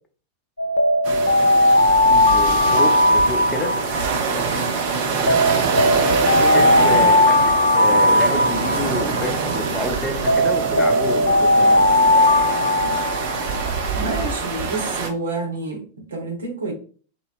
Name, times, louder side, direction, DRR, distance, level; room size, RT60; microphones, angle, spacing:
Alarm, 0.6-4.7 5.3-9.7 10.3-14.1, left 1 dB, 80° left, 0.4 m, -18 dB
sound 1, 1.0-15.1, right 5 dB, 50° right, 0.6 m, -25 dB
voice 1, 2.2-3.8 5.2-5.7 6.3-7.4 7.7-11.8, left 2 dB, 15° left, 0.7 m, -28 dB
voice 2, 4.5-5.1 6.5-7.1 14.0-16.7, right 3 dB, 70° right, 1.0 m, -29 dB
4.1 x 3.0 x 2.4 m
figure-of-eight pair, 90°, 0 cm